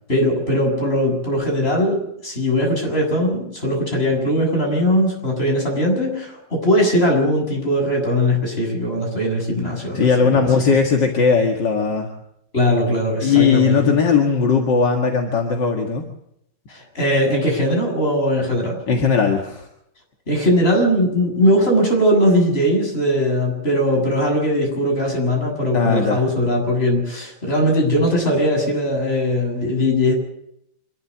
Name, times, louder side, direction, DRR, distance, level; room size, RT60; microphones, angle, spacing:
voice 1, 0.1-10.5 12.5-14.0 16.7-18.8 20.3-30.1, equal, 30° left, 1 dB, 7.7 m, -20 dB
voice 2, 9.9-12.1 13.2-16.1 18.9-19.7 25.7-26.2, left 5 dB, 65° left, 2 dB, 2.5 m, -18 dB
26.5 x 12.5 x 8.4 m, 0.77 s
omnidirectional pair, 2.1 m